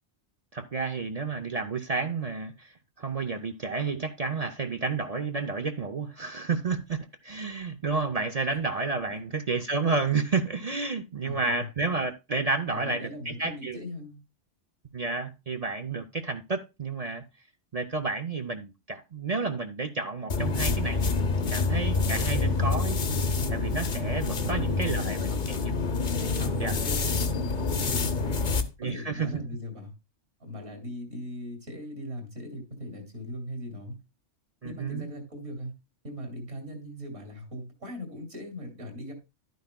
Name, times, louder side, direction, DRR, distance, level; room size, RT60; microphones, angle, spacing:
voice 1, 0.5-13.8 14.9-17.2 17.7-23.0 23.2-25.3 26.6-26.8 28.8-29.4 34.6-35.1, right 4 dB, 45° right, 0.5 m, -31 dB
voice 2, 11.2-11.7 12.7-14.2 24.4-25.8 26.1-27.9 28.2-28.5 28.8-29.9 30.4-34.0 34.6-35.7 36.0-39.1, left 1 dB, 65° right, 2.9 m, -39 dB
sound 1, 20.3-28.7, left 3 dB, 45° left, 0.9 m, -27 dB
11.5 x 9.3 x 2.2 m
omnidirectional pair, 1.2 m